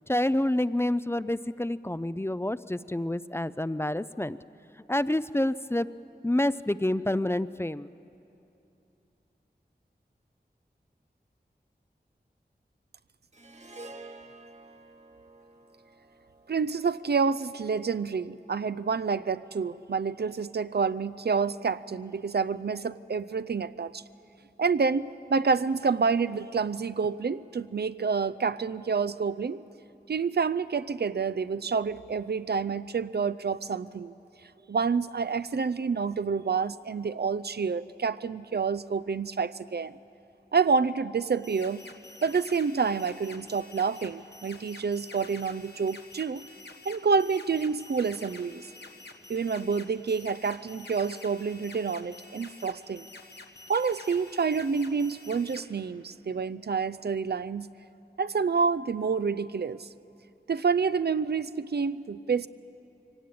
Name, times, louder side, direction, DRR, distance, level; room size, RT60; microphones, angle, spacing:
voice 1, 0.1-4.4 4.9-5.9 6.2-7.9, left 1 dB, 15° left, 15 dB, 0.4 m, -28 dB
Harp, 13.3-17.8, right 2 dB, 40° right, 1.2 m, -50 dB
voice 2, 16.5-24.0 24.6-29.6 30.1-34.1 34.7-39.9 40.5-41.8 42.2-46.4 46.9-48.6 49.3-53.1 53.7-57.7 58.2-59.9 60.5-62.5, right 5 dB, 70° right, 15 dB, 0.5 m, -28 dB
sound 1, 41.2-55.6, left 2 dB, 80° left, 1.5 m, -48 dB
23.0 x 18.0 x 8.6 m, 2.8 s
wide cardioid pair, 60°, 17 cm